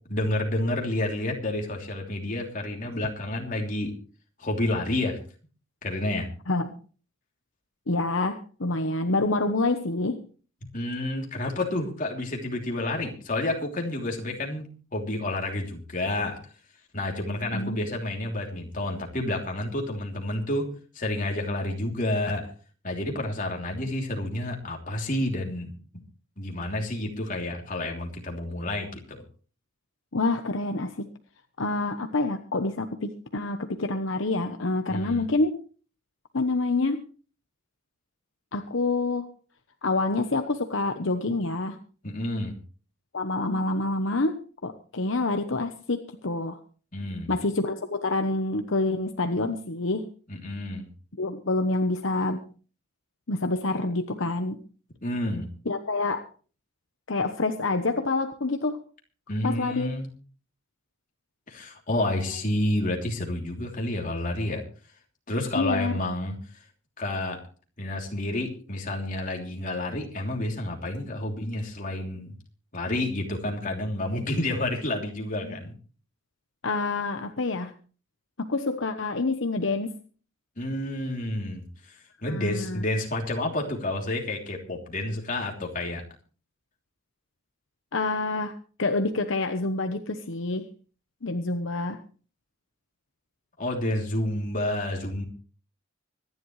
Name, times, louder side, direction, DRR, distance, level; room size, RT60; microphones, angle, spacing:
voice 1, 0.1-3.9 4.4-5.2 5.8-6.3 10.7-14.7 14.9-16.4 16.9-22.5 22.8-25.7 26.4-29.2 34.9-35.3 42.0-42.6 46.9-47.3 50.3-50.9 55.0-55.5 59.3-60.1 61.5-64.6 65.3-66.3 67.0-67.4 67.8-72.3 72.7-75.7 80.6-86.0 93.6-95.2, left 1 dB, 40° left, 1 dB, 3.2 m, -29 dB
voice 2, 7.9-10.2 17.5-17.8 30.1-31.1 31.6-35.6 36.3-37.0 38.5-39.3 39.8-41.8 43.1-46.6 47.3-50.1 51.2-52.4 53.3-54.6 55.6-56.2 57.1-58.8 59.4-60.0 65.5-65.9 75.4-75.6 76.6-77.7 78.4-79.9 82.2-82.8 87.9-90.6 91.2-92.0, left 2 dB, 70° left, 7 dB, 1.0 m, -27 dB
25.0 x 11.0 x 3.3 m, 0.40 s
head